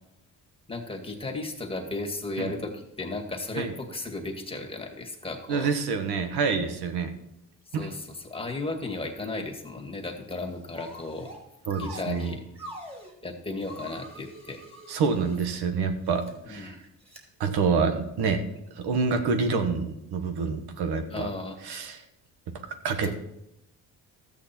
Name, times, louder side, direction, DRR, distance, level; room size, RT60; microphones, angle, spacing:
voice 1, 0.7-5.7 7.7-11.3 11.7-12.4 13.2-14.6 16.5-16.8 21.1-21.6 22.9-23.1, left 2 dB, 15° left, 2 dB, 1.9 m, -35 dB
voice 2, 5.5-7.1 7.7-7.9 11.7-12.3 14.9-16.8 17.4-18.4 18.8-21.3 21.6-22.0 22.8-23.1, right 5 dB, 80° right, 8 dB, 1.5 m, -27 dB
sound 1, 10.7-11.4 11.7-13.1 13.6-15.4 16.1-16.3 17.1-17.2, equal, 15° right, 2.9 m, -44 dB
13.5 x 8.7 x 4.4 m, 0.82 s
cardioid pair, 100°, 38 cm